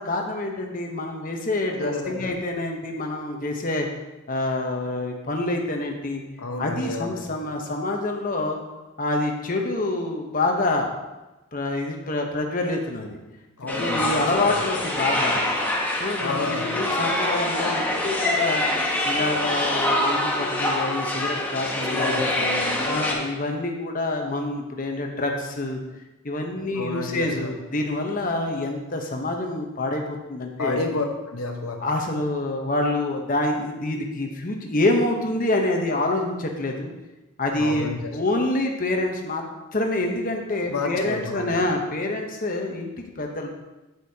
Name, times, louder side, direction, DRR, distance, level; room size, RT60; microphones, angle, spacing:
voice 1, 0.0-3.9 4.3-6.2 6.6-8.6 9.0-10.9 11.5-13.2 13.7-15.4 16.0-18.7 19.0-22.3 22.8-25.8 26.2-30.8 31.8-36.9 37.4-39.4 39.7-43.5, left 2 dB, 40° left, 2 dB, 0.9 m, -26 dB
voice 2, 1.7-2.3 6.4-7.2 13.6-14.6 16.2-16.7 21.9-22.8 26.7-27.6 30.6-31.8 37.6-38.1 40.7-41.5, left 3 dB, 75° left, 3 dB, 1.1 m, -30 dB
sound 1, 13.7-23.1, left 1 dB, 10° left, 0.9 m, -25 dB
8.3 x 8.0 x 2.8 m, 1.0 s
head